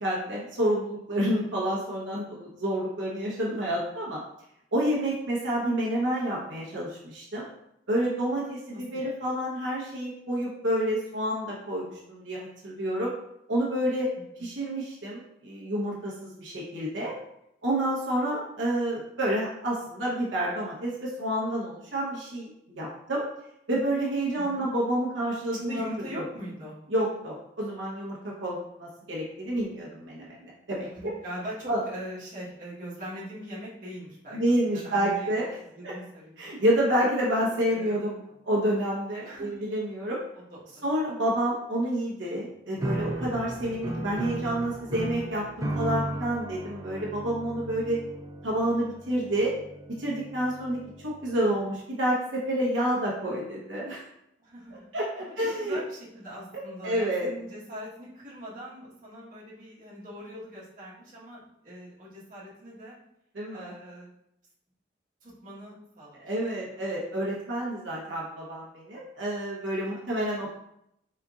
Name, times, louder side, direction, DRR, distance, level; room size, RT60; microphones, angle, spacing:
voice 1, 0.0-4.2 4.7-7.5 7.9-13.1 13.5-14.1 14.4-17.1 17.6-23.2 23.7-26.2 26.9-31.1 31.7-31.8 34.3-35.6 35.8-35.9 36.4-38.2 38.4-40.2 40.8-48.0 48.4-49.5 50.0-50.8 51.0-54.0 54.9-55.8 56.5-57.3 63.3-63.7 66.1-70.5, right 1 dB, 85° right, -5 dB, 1.0 m, -29 dB
voice 2, 8.7-9.1 14.4-14.5 24.3-24.7 25.5-26.8 30.9-34.4 34.7-35.3 35.6-36.4 37.7-37.9 38.2-38.3 39.2-39.6 40.3-40.8 54.4-54.9 55.2-63.0 63.5-64.1 65.2-66.2 69.8-70.1, equal, 45° right, -7 dB, 1.4 m, -41 dB
sound 1, 42.8-51.1, right 1 dB, 20° right, 0.4 m, -35 dB
4.3 x 3.7 x 2.4 m, 0.79 s
head